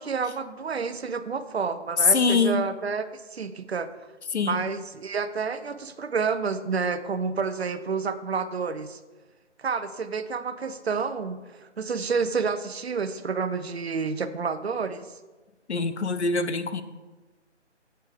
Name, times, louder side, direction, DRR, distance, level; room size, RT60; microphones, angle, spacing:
voice 1, 0.0-3.9 4.4-9.0 9.6-15.1, right 5 dB, 60° right, 11 dB, 0.8 m, -29 dB
voice 2, 2.1-2.6 4.3-4.7 15.7-16.8, left 4 dB, 65° left, 11 dB, 0.9 m, -24 dB
11.5 x 8.3 x 4.8 m, 1.2 s
figure-of-eight pair, 165°, 36 cm